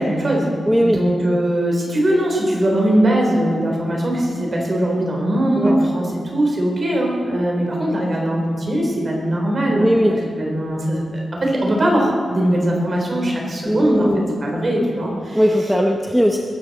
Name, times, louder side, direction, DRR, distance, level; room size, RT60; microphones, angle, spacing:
voice 1, 0.0-0.5 0.8-14.1 14.4-15.4, right 1 dB, 35° right, -1 dB, 3.6 m, -20 dB
voice 2, 0.7-1.0 5.6-5.8 9.7-10.2 13.6-14.3 15.3-16.4, equal, ahead, 1 dB, 0.8 m, -18 dB
21.5 x 12.5 x 4.2 m, 2.1 s
wide cardioid pair, 150°, 0 cm